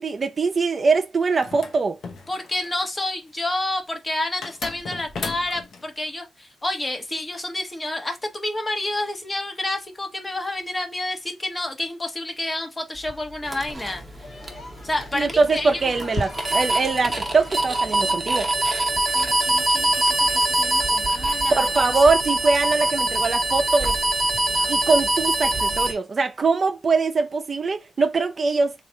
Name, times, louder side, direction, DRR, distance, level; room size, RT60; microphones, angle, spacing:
voice 1, 0.0-2.0 15.1-18.5 21.6-24.0 24.7-28.7, right 4 dB, 45° right, 0.5 m, -22 dB
sound 1, 1.4-2.8 4.4-5.8, left 4 dB, 80° left, 0.8 m, -35 dB
voice 2, 2.3-14.0 14.8-15.8 19.1-21.7 24.5-24.9, left 1 dB, 25° left, 0.9 m, -29 dB
sound 2, 12.9-25.9, left 2 dB, 60° left, 1.0 m, -40 dB
sound 3, 13.5-25.9, right 1 dB, 25° right, 0.8 m, -24 dB
3.2 x 2.4 x 3.8 m
cardioid pair, 90°, 0 cm